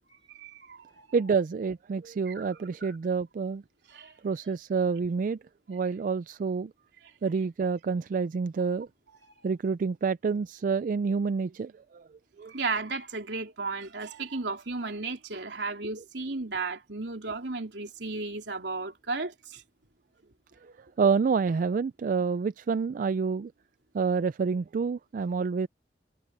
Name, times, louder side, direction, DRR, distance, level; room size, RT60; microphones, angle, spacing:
voice 1, 0.3-1.1 2.3-2.5 2.8-3.0 3.9-4.1 9.2-9.3 12.5-19.6, right 3 dB, 75° right, 3.4 m, -34 dB
voice 2, 1.1-3.6 4.2-5.4 5.7-6.7 7.2-8.9 9.4-12.1 12.4-12.5 21.0-23.5 23.9-25.7, right 5 dB, 50° right, 0.3 m, -28 dB
head